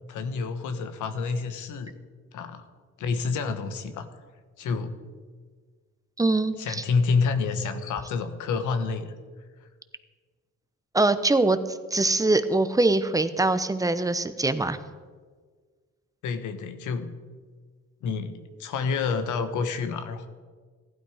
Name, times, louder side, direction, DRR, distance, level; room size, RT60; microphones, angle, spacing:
voice 1, 0.1-2.0 2.3-2.6 3.0-4.1 4.6-4.9 6.6-9.1 16.2-17.1 18.0-20.3, left 5 dB, 80° left, 8 dB, 1.3 m, -28 dB
voice 2, 6.2-6.8 10.9-14.8, right 2 dB, 10° right, 11 dB, 0.9 m, -23 dB
15.5 x 12.0 x 5.0 m, 1.5 s
cardioid pair, 90°, 30 cm